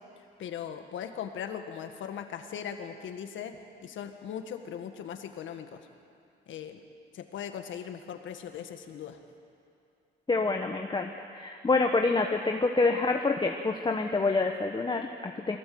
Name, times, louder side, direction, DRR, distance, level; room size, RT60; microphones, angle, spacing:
voice 1, 0.4-5.8 6.5-6.8 7.1-9.2, left 8 dB, 75° left, 6 dB, 1.7 m, -39 dB
voice 2, 10.3-15.6, left 3 dB, 25° left, 3 dB, 1.2 m, -27 dB
22.5 x 17.0 x 7.9 m, 2.5 s
cardioid pair, 90°, 20 cm